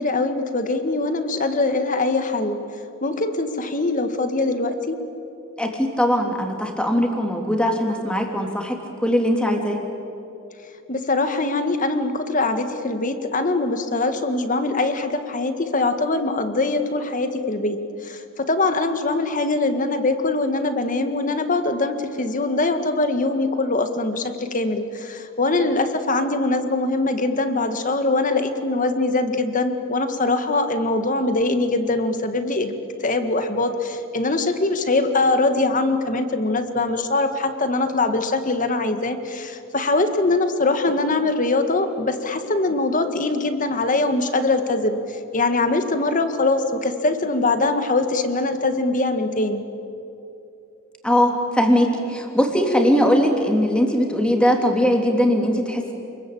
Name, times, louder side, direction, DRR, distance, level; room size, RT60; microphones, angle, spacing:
voice 1, 0.0-2.6 3.0-5.0 10.9-32.7 33.0-49.6, left 2 dB, 40° left, 8 dB, 1.8 m, -22 dB
voice 2, 5.6-9.8 51.0-55.9, equal, 5° left, 2 dB, 3.2 m, -20 dB
29.0 x 21.5 x 8.8 m, 2.8 s
head